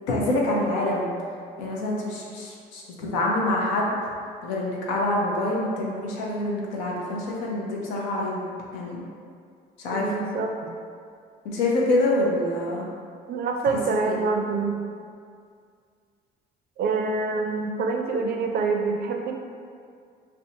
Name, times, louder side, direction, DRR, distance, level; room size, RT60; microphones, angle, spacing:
voice 1, 0.1-1.1 1.6-4.0 4.4-8.5 8.7-9.0 9.8-10.2 11.4-12.8 14.0-14.2, left 1 dB, 85° left, -3 dB, 0.5 m, -26 dB
voice 2, 9.9-10.7 13.3-14.8 16.8-19.3, right 4 dB, 50° right, 2 dB, 0.4 m, -26 dB
2.5 x 2.2 x 2.7 m, 2.2 s
hypercardioid pair, 55°, 20 cm